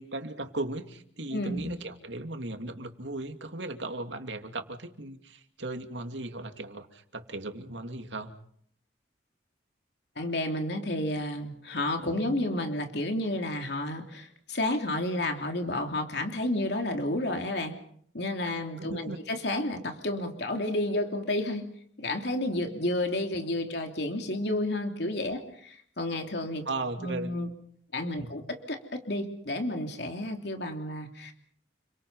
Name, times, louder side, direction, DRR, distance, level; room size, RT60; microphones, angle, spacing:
voice 1, 0.0-8.3 12.0-12.4 18.8-19.2 26.7-27.3 28.2-28.3, right 2 dB, 80° right, 6 dB, 2.7 m, -37 dB
voice 2, 1.3-1.7 10.2-17.8 18.1-21.7 22.0-26.7 27.0-27.5 27.9-31.3, left 1 dB, 65° left, 4 dB, 3.1 m, -31 dB
29.5 x 24.5 x 5.6 m, 0.65 s
head